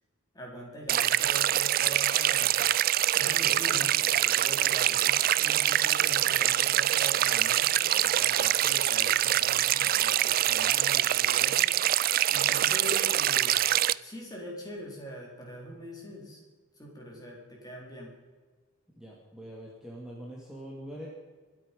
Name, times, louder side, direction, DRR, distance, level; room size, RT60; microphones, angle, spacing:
voice 1, 0.3-2.5 3.1-12.0 12.3-13.5 14.0-16.4 16.8-18.1, equal, 20° left, -2 dB, 4.2 m, -43 dB
sound 1, 0.9-13.9, right 12 dB, 45° right, 0.3 m, -25 dB
voice 2, 19.0-21.1, equal, 5° right, -4 dB, 2.3 m, -43 dB
24.5 x 8.8 x 5.4 m, 1.4 s
head